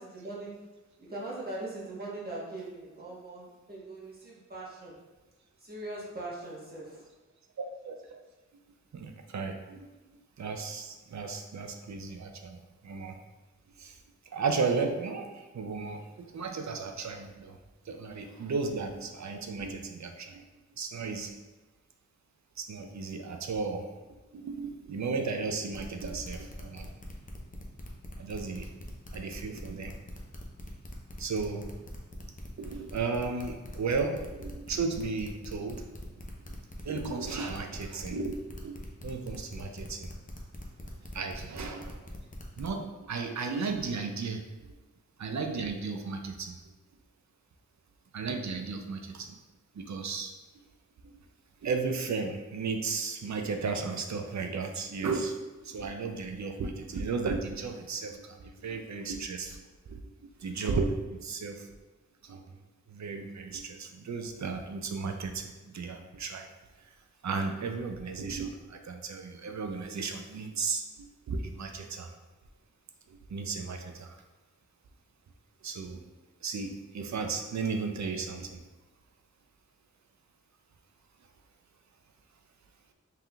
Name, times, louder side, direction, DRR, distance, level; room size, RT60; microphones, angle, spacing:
voice 1, 0.1-0.5 1.1-4.9 5.6-7.0, right 2 dB, 30° right, -6 dB, 1.3 m, -40 dB
voice 2, 7.8-8.2 8.9-9.9 10.4-13.2 13.8-14.0 14.3-17.6 17.9-20.4 20.8-21.3 22.6-23.9 24.3-26.9 28.2-28.7 29.1-29.9 31.2-31.7 32.6-35.8 36.8-40.1 41.1-42.0 42.6-44.7 45.2-46.6 48.1-49.3 49.7-50.3 51.0-51.1 51.6-55.3 55.6-59.6 59.9-60.0 60.4-61.7 62.2-62.4 62.9-66.5 67.2-72.1 73.1-74.2 75.6-76.0 76.4-78.6, right 4 dB, 70° right, 5 dB, 0.5 m, -34 dB
sound 1, 25.7-42.7, left 1 dB, 25° left, 0.7 m, -44 dB
5.6 x 3.5 x 2.3 m, 1.1 s
wide cardioid pair, 100°, 30 cm